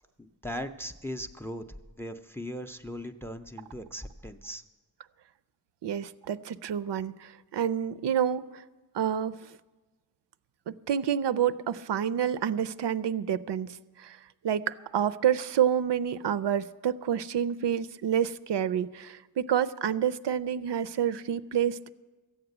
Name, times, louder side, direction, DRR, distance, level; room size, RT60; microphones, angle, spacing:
voice 1, 0.2-1.6 2.0-4.6, equal, 5° left, 9 dB, 0.4 m, -38 dB
voice 2, 5.8-8.6 8.9-9.4 10.7-14.2 14.4-21.9, right 9 dB, 80° right, 16 dB, 0.5 m, -28 dB
14.0 x 8.8 x 7.8 m, 1.2 s
wide cardioid pair, 160°, 42 cm